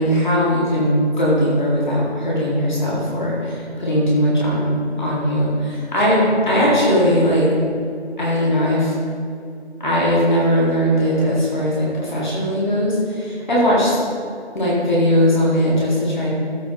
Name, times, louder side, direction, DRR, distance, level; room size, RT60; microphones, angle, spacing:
voice 1, 0.0-7.5 8.2-8.9 9.8-14.0 14.5-16.3, equal, 40° left, -7 dB, 1.9 m, -19 dB
13.0 x 5.0 x 3.0 m, 2.4 s
figure-of-eight pair, 170°, 34 cm